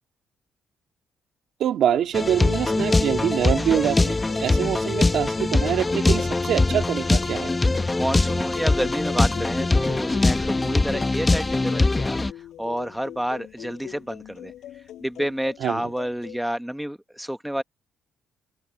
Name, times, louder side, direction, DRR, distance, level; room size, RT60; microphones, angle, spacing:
voice 1, 1.6-7.5 15.6-15.9, right 10 dB, 70° right, 2.3 m, -25 dB
sound 1, 1.9-16.4, left 12 dB, 80° left, 4.8 m, -42 dB
sound 2, 2.1-12.3, left 2 dB, 20° left, 0.8 m, -22 dB
voice 2, 7.9-12.2 12.6-14.5 15.0-17.6, equal, 5° right, 1.0 m, -29 dB
open air
cardioid pair, 90°, 0 cm